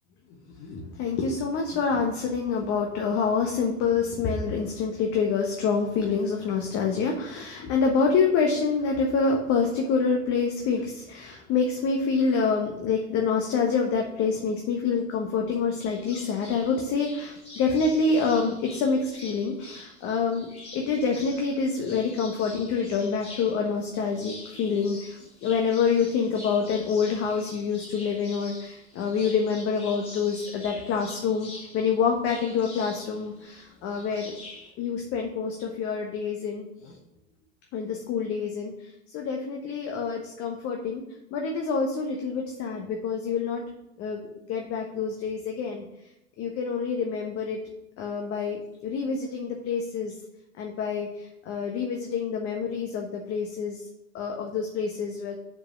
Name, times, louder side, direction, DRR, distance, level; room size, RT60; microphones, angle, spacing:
voice 1, 0.5-34.3 34.8-37.0 37.7-41.0 41.3-43.6 44.0-44.2 44.5-45.8 46.4-47.6 48.0-50.1 50.6-53.8 54.1-55.4, left 5 dB, 40° left, 1 dB, 1.3 m, -27 dB
sound 1, 15.8-34.7, left 2 dB, 20° left, 3.2 m, -46 dB
7.4 x 4.8 x 6.2 m, 0.88 s
figure-of-eight pair, 85°, 34 cm